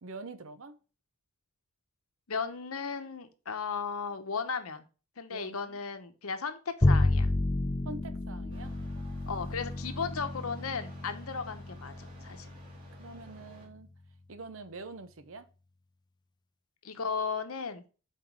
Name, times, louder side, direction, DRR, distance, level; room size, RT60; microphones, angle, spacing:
voice 1, 0.0-0.8 5.3-5.8 7.8-8.7 13.0-13.9 14.3-15.5, right 3 dB, 65° right, 0.7 m, -45 dB
voice 2, 2.3-4.8 5.2-7.3 9.3-12.5 16.8-17.8, left 5 dB, 85° left, 0.9 m, -35 dB
Bowed string instrument, 6.8-13.3, left 2 dB, 20° left, 0.5 m, -31 dB
sound 1, 8.5-13.7, right 2 dB, 40° right, 3.0 m, -56 dB
6.0 x 4.6 x 4.6 m
head